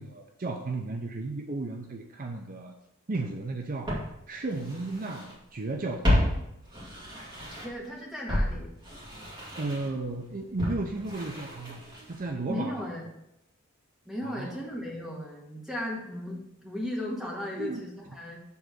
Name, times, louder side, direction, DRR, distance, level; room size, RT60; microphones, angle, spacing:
voice 1, 0.0-2.7 3.1-3.9 4.3-6.2 9.6-11.8 12.1-12.9 14.2-14.5 17.5-17.8, right 2 dB, 40° right, 3 dB, 0.6 m, -34 dB
Walk footsteps, 3.1-3.2 3.9-5.3 5.6-7.9 8.3-12.3 12.6-12.7, left 1 dB, 25° right, 2.4 m, -31 dB
voice 2, 7.6-8.7 12.5-13.1 14.1-18.4, left 1 dB, ahead, -4 dB, 1.7 m, -36 dB
7.1 x 3.9 x 6.1 m, 0.84 s
head